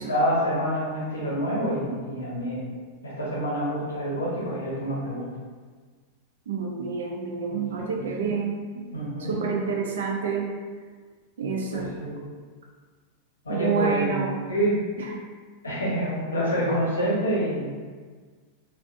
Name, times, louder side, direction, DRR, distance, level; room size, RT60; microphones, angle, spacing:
voice 1, 0.0-2.6 3.0-5.2 7.5-8.3 8.9-9.4 11.7-12.2 13.4-14.8 15.6-17.7, equal, 75° left, -6 dB, 0.9 m, -27 dB
voice 2, 6.5-8.8 9.2-10.5 11.4-11.9 13.5-14.4 15.0-15.1, right 5 dB, 60° right, 0 dB, 0.5 m, -28 dB
3.3 x 2.5 x 2.5 m, 1.5 s
figure-of-eight pair, 90°, 0 cm